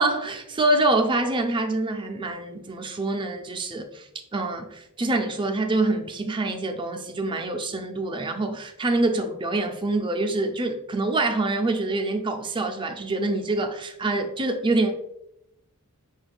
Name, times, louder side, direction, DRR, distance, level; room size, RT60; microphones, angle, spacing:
voice 1, 0.0-14.9, right 2 dB, 20° right, 0.4 m, -25 dB
5.4 x 2.4 x 3.4 m
head